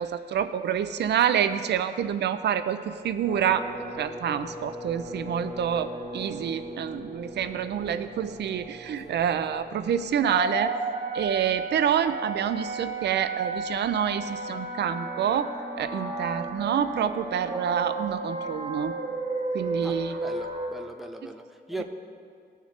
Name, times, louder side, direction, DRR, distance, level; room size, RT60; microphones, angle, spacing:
voice 1, 0.0-3.7 3.9-10.7 11.1-15.5 15.8-18.9 19.5-20.2, right 9 dB, 90° right, 11 dB, 0.5 m, -27 dB
sound 1, 3.2-20.7, right 2 dB, 55° right, 3.0 m, -34 dB
voice 2, 19.8-21.8, right 1 dB, ahead, 4 dB, 0.7 m, -39 dB
18.5 x 6.6 x 3.3 m, 2.2 s
wide cardioid pair, 135°, 17 cm